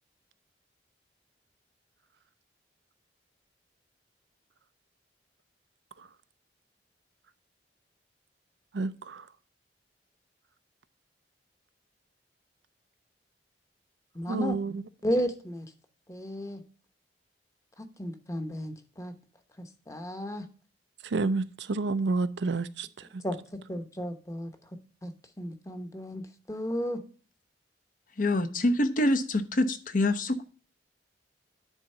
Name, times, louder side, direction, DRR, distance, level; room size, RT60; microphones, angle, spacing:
voice 1, 8.7-9.2 14.3-14.8 21.1-22.9, right 3 dB, 75° right, 0.5 m, -29 dB
voice 2, 14.1-14.6 15.0-15.7 16.1-16.6 17.8-19.1 19.6-20.5 23.2-24.6 25.0-27.0, equal, 15° left, 0.9 m, -34 dB
voice 3, 28.2-30.4, left 1 dB, 50° left, 0.7 m, -26 dB
9.8 x 3.9 x 5.5 m
head